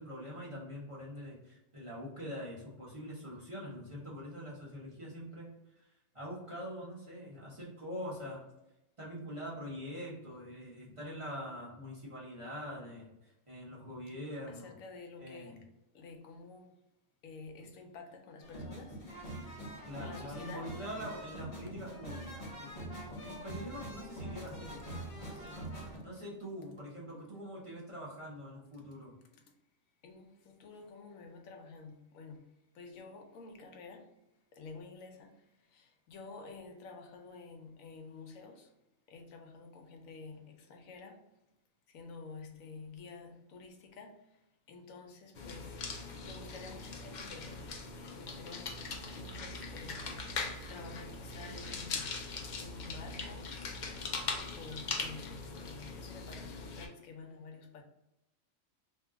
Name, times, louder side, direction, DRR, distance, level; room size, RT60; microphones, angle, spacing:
voice 1, 0.0-5.5 5.8-5.9 6.1-8.5 9.0-14.8 15.2-15.6 19.9-24.9 25.2-29.2, equal, 25° right, 0.9 m, -44 dB
voice 2, 14.5-15.6 15.9-16.7 17.2-19.0 20.0-20.7 23.1-23.5 30.0-34.1 34.5-35.4 35.7-38.7 39.1-41.2 41.9-44.2 44.7-47.8 48.1-48.8 49.2-50.2 50.7-52.2 52.6-53.5 54.4-57.8, left 4 dB, 85° left, 1.0 m, -50 dB
sound 1, 18.4-26.0, right 1 dB, 35° left, 0.8 m, -44 dB
sound 2, 45.3-56.9, left 4 dB, 65° left, 0.4 m, -41 dB
2.7 x 2.3 x 3.6 m
omnidirectional pair, 1.4 m